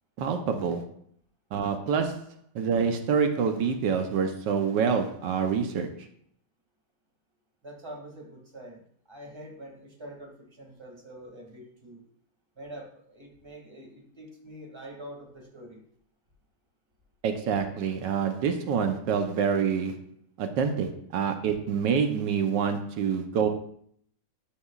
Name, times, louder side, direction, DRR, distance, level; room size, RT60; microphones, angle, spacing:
voice 1, 0.2-0.9 1.5-2.2 2.5-5.9 17.2-19.9 20.4-23.5, right 6 dB, 85° right, 5 dB, 1.5 m, -26 dB
voice 2, 7.6-12.0 12.6-15.8, right 1 dB, 15° right, -1 dB, 1.9 m, -45 dB
12.0 x 6.6 x 2.4 m, 0.63 s
omnidirectional pair, 1.9 m